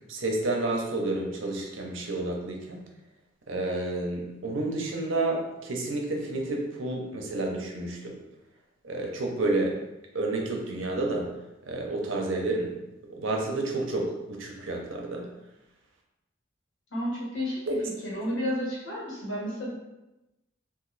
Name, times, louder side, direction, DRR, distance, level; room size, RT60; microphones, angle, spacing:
voice 1, 0.1-2.8 3.5-8.1 8.8-9.8 10.1-11.3 11.7-12.7 13.1-15.3 17.7-17.8, right 2 dB, 75° right, 1 dB, 0.7 m, -30 dB
voice 2, 16.9-17.8 18.0-19.7, equal, 75° left, -5 dB, 1.3 m, -31 dB
3.0 x 2.5 x 3.9 m, 0.99 s
head